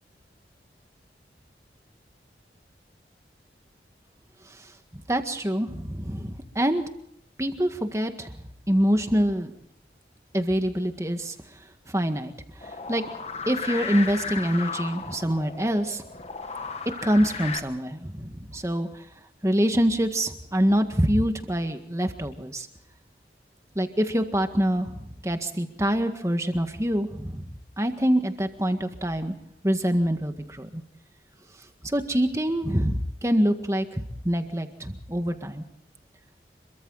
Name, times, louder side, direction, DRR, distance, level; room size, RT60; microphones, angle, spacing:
voice 1, 4.9-6.8 7.4-8.3 8.7-9.5 10.3-11.3 11.9-12.3 12.6-13.0 13.5-16.0 17.0-19.0 19.4-22.7 23.8-27.5 27.8-29.3 29.6-30.8 31.8-35.6, equal, 15° right, 7 dB, 1.7 m, -25 dB
sound 1, 12.6-17.6, left 5 dB, 35° left, 1.4 m, -35 dB
27.0 x 23.5 x 4.1 m, 0.71 s
head